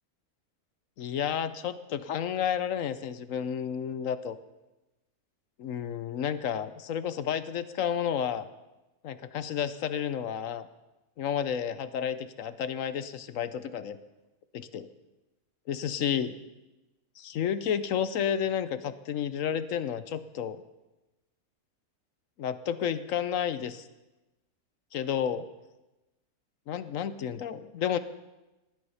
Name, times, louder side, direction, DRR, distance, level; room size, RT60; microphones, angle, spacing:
voice 1, 1.0-4.4 5.6-8.5 9.0-10.7 11.2-14.0 14.5-14.9 15.7-16.4 17.2-20.6 22.4-23.9 24.9-25.5 26.7-28.0, left 8 dB, 65° left, 13 dB, 1.0 m, -31 dB
19.0 x 9.8 x 5.6 m, 1.0 s
omnidirectional pair, 1.6 m